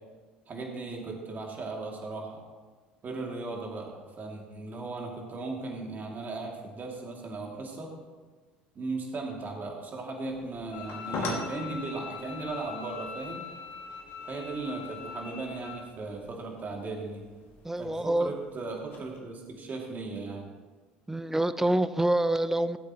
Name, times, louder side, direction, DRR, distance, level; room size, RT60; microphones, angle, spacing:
voice 1, 0.5-2.4 3.0-7.9 8.7-13.4 14.2-17.3 17.8-20.5, right 3 dB, 35° right, 0 dB, 2.5 m, -37 dB
sound 1, 10.3-19.2, left 2 dB, 50° left, 2.1 m, -43 dB
Bowed string instrument, 10.7-15.7, left 6 dB, 70° left, 1.3 m, -42 dB
voice 2, 17.6-18.3 21.1-22.8, right 1 dB, 5° right, 13 dB, 0.5 m, -26 dB
15.0 x 8.2 x 3.0 m, 1.4 s
figure-of-eight pair, 65°, 5 cm